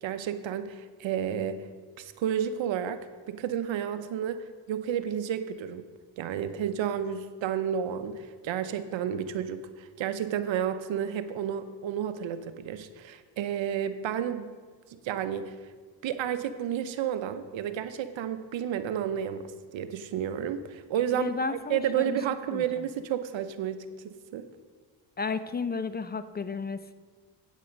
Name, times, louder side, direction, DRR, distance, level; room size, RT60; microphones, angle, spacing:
voice 1, 0.0-1.6 2.0-3.0 3.3-4.4 4.7-5.8 6.2-14.5 14.9-15.5 16.0-24.5, right 9 dB, 70° right, 11 dB, 0.8 m, -31 dB
voice 2, 21.1-22.2 22.5-22.6 25.2-27.0, left 4 dB, 20° left, 12 dB, 0.4 m, -33 dB
8.4 x 8.3 x 5.1 m, 1.5 s
cardioid pair, 75°, 47 cm